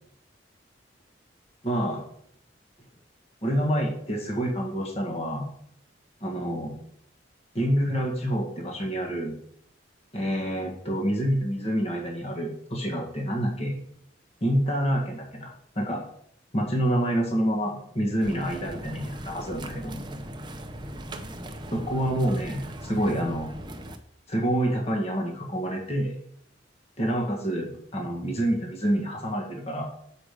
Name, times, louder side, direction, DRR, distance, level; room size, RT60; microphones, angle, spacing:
voice 1, 1.6-2.0 3.4-5.5 6.2-6.7 7.5-9.4 10.1-13.7 14.4-16.0 16.5-20.0 21.7-23.5 24.3-26.2 27.0-29.8, equal, 35° left, 0 dB, 1.5 m, -27 dB
sound 1, 18.2-24.0, equal, 25° right, 0.6 m, -39 dB
6.6 x 4.9 x 5.0 m, 0.69 s
head